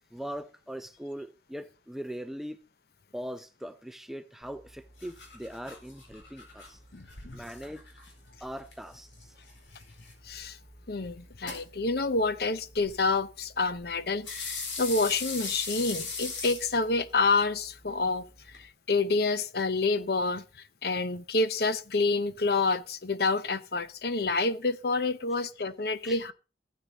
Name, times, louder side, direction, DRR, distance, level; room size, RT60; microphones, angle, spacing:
voice 1, 0.1-2.6 3.1-6.8 7.3-7.8 8.4-9.3 26.0-26.2, equal, ahead, 0.5 m, -40 dB
sound 1, 4.4-18.6, left 4 dB, 80° left, 4.4 m, -42 dB
voice 2, 6.9-7.4 10.2-10.6 10.9-18.3 18.5-20.4 20.8-26.3, left 3 dB, 55° left, 0.8 m, -28 dB
15.0 x 9.6 x 3.9 m
head